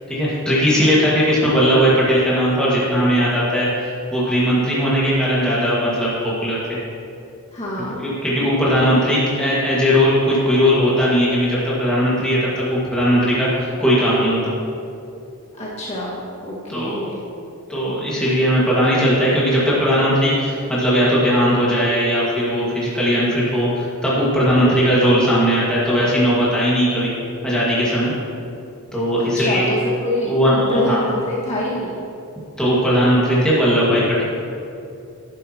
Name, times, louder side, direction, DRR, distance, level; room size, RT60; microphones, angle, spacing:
voice 1, 0.1-6.6 8.0-14.5 16.7-17.0 17.7-27.1 27.4-28.1 28.9-29.7 30.3-31.0 32.6-34.2, equal, 5° left, -8 dB, 2.0 m, -18 dB
voice 2, 7.5-8.0 15.6-17.2 29.2-32.0, left 1 dB, 30° left, -7 dB, 2.0 m, -26 dB
11.5 x 10.5 x 3.0 m, 2.6 s
head